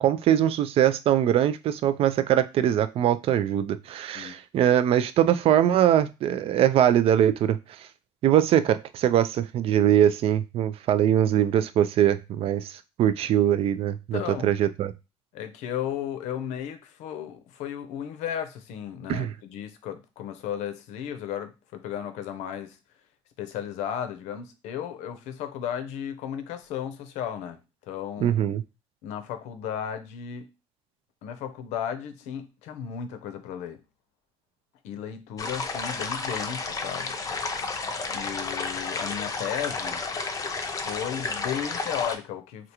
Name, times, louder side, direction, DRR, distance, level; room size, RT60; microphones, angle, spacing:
voice 1, 0.0-7.9 8.2-14.9 19.1-19.3 28.2-28.6, right 10 dB, 55° right, 0.3 m, -22 dB
voice 2, 14.1-14.6 15.3-22.8 23.4-27.6 27.9-28.3 29.0-30.5 31.2-33.8 34.8-37.4 38.1-40.0 40.8-42.7, left 9 dB, 75° left, 0.6 m, -34 dB
sound 1, 35.4-42.2, left 4 dB, 30° left, 0.5 m, -31 dB
3.5 x 2.4 x 2.8 m
supercardioid pair, 85°, 12 cm